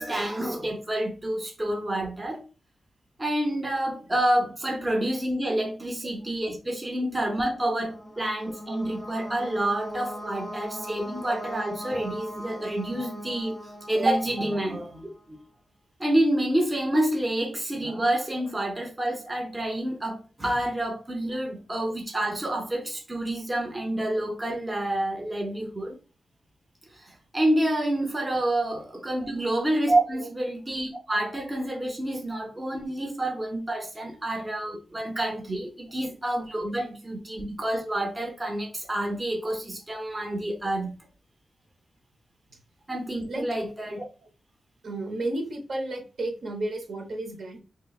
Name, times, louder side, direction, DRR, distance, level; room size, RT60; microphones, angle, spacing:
voice 1, 0.0-2.4 3.2-13.6 13.9-15.4 16.0-26.0 26.9-41.0 42.9-44.0, right 1 dB, 20° right, 2 dB, 0.6 m, -28 dB
sound 1, 7.5-15.2, equal, 5° left, 1.1 m, -40 dB
voice 2, 44.8-47.6, right 2 dB, 65° right, 2 dB, 0.8 m, -33 dB
3.7 x 2.9 x 2.3 m, 0.34 s
wide cardioid pair, 145°, 0 cm